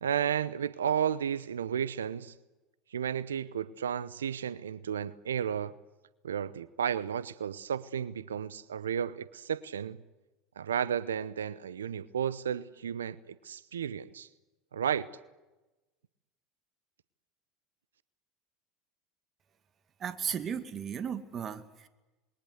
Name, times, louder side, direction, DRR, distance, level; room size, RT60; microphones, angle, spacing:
voice 1, 0.0-2.3 2.9-5.7 6.2-10.0 10.6-14.3 14.7-15.1, right 8 dB, 85° right, 0.8 m, -33 dB
voice 2, 20.0-21.9, right 8 dB, 40° right, 2.1 m, -35 dB
27.5 x 22.0 x 8.1 m
hypercardioid pair, 80°, 0 cm